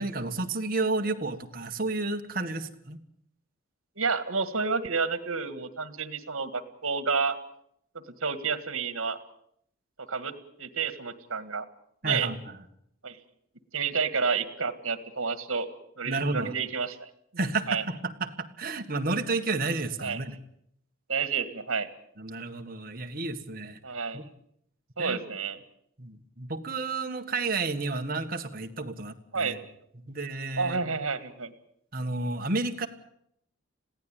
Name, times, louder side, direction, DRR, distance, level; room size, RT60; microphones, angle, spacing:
voice 1, 0.0-3.0 12.0-12.4 16.1-16.5 17.4-20.3 22.2-23.8 24.1-24.2 25.0-25.2 26.0-29.6 30.1-30.8 31.9-32.9, right 3 dB, 45° right, 5 dB, 1.7 m, -31 dB
voice 2, 4.0-7.4 7.9-9.2 10.1-10.3 10.6-11.7 12.0-12.3 13.0-13.2 13.7-15.7 16.0-17.1 17.7-17.8 20.0-20.2 21.1-21.9 23.8-24.2 25.0-25.6 29.3-29.6 30.6-31.5, right 5 dB, 80° right, 12 dB, 1.9 m, -30 dB
21.5 x 16.0 x 9.1 m, 0.71 s
head